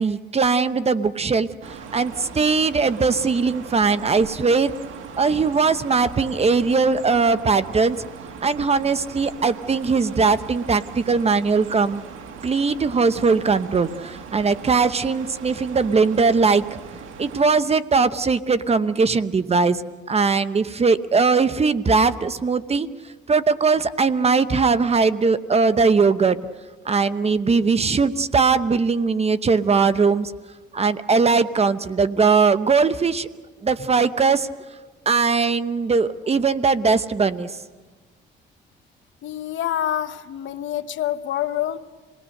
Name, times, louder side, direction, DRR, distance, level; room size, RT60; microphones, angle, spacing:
voice 1, 0.0-4.7 5.2-8.0 8.4-12.0 12.4-16.6 17.2-22.9 23.3-26.4 26.8-30.3 30.7-33.3 33.6-34.5 35.1-37.6, right 4 dB, 30° right, 13 dB, 0.9 m, -20 dB
sound 1, 1.6-17.5, right 6 dB, 85° right, 1.8 m, -39 dB
voice 2, 39.2-41.8, left 11 dB, 70° left, 11 dB, 0.9 m, -26 dB
27.0 x 19.0 x 6.5 m, 1.3 s
cardioid pair, 90°, 20 cm